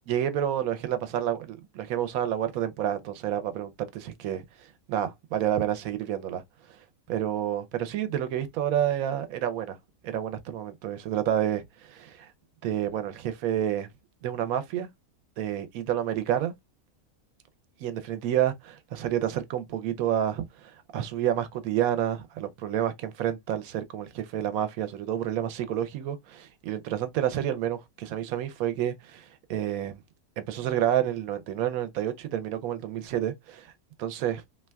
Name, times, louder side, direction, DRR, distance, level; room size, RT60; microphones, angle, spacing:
voice 1, 0.1-4.4 4.9-6.4 7.1-9.8 10.0-12.3 12.6-13.9 14.2-14.9 15.4-16.5 17.8-30.0 30.4-33.7 34.0-34.4, right 10 dB, 75° right, 1.0 m, -29 dB
3.3 x 2.8 x 2.2 m
omnidirectional pair, 1.5 m